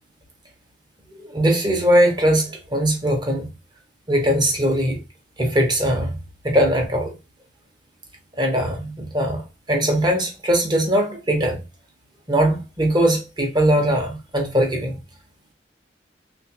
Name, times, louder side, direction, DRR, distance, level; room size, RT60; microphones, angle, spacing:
voice 1, 1.2-3.5 4.1-5.0 5.4-6.2 6.4-7.1 8.4-11.6 12.3-15.0, equal, 25° right, 1.0 m, -20 dB
3.3 x 2.5 x 4.3 m
head